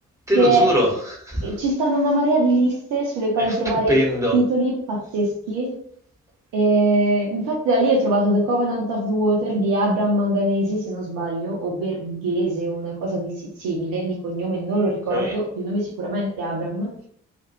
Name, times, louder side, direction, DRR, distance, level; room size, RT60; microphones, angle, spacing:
voice 1, 0.3-1.6 3.4-3.6 3.9-4.4 15.1-15.4, equal, 10° right, -1 dB, 1.3 m, -22 dB
voice 2, 1.4-3.9 4.3-5.8 6.5-13.3 13.6-16.9, right 1 dB, 60° right, -2 dB, 0.9 m, -22 dB
2.5 x 2.5 x 4.1 m, 0.64 s
figure-of-eight pair, 40°, 39 cm